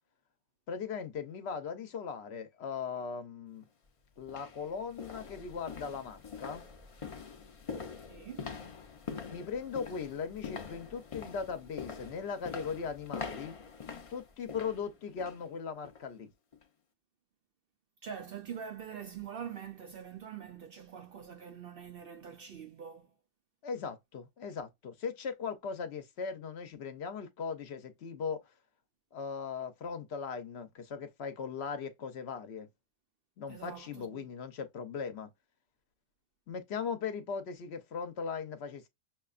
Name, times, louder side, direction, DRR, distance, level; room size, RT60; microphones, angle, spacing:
voice 1, 0.7-3.7 4.2-6.6 9.3-13.6 14.1-16.3 23.6-28.4 29.1-32.7 33.4-35.3 36.5-38.9, left 6 dB, 60° left, 0.9 m, -39 dB
sound 1, 3.5-3.6 4.2-15.5 15.8-16.1 16.5-16.6, left 5 dB, 40° left, 0.5 m, -44 dB
voice 2, 8.1-8.5 18.0-23.1 33.5-34.3, right 8 dB, 60° right, 0.6 m, -44 dB
6.0 x 2.2 x 2.4 m
omnidirectional pair, 1.3 m